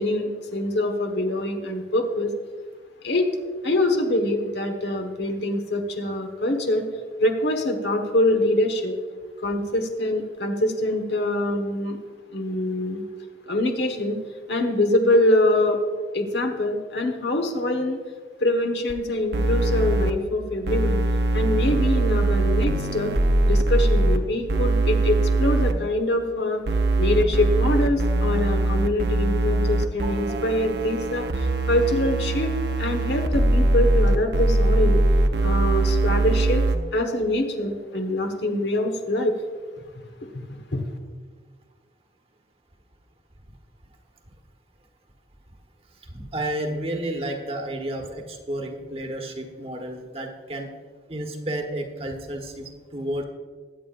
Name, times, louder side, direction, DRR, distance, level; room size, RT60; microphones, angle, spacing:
voice 1, 0.0-2.3 3.0-3.3 3.6-6.8 7.2-8.9 9.4-12.0 12.3-13.1 13.5-14.2 14.5-15.8 16.1-18.0 18.4-21.0 21.3-23.1 23.5-26.6 27.0-31.3 31.7-35.0 35.4-36.6 36.9-39.3 40.3-40.4 40.7-40.8, left 1 dB, 75° left, 5 dB, 1.3 m, -24 dB
sound 1, 18.9-19.0 19.3-20.1 20.7-24.2 24.5-25.7 26.7-36.8, right 2 dB, 70° right, 0.7 m, -21 dB
voice 2, 30.0-30.4 46.1-50.7 51.1-53.2, right 1 dB, 35° right, 2 dB, 1.2 m, -31 dB
21.5 x 8.5 x 2.5 m, 1.5 s
head